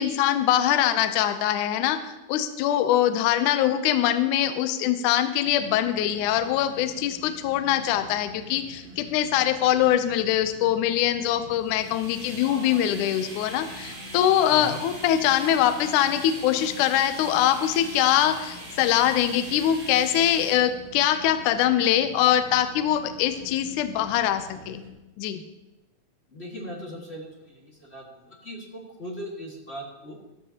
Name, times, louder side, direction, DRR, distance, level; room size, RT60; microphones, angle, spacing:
voice 1, 0.0-24.8 25.2-25.4, left 11 dB, 75° left, 9 dB, 1.9 m, -23 dB
sound 1, 5.4-24.9, right 1 dB, 70° right, 3.3 m, -46 dB
sound 2, 11.6-20.5, right 1 dB, 20° right, 3.3 m, -42 dB
voice 2, 26.3-30.2, equal, 30° left, -2 dB, 1.3 m, -39 dB
13.0 x 13.0 x 2.9 m, 0.98 s
omnidirectional pair, 4.0 m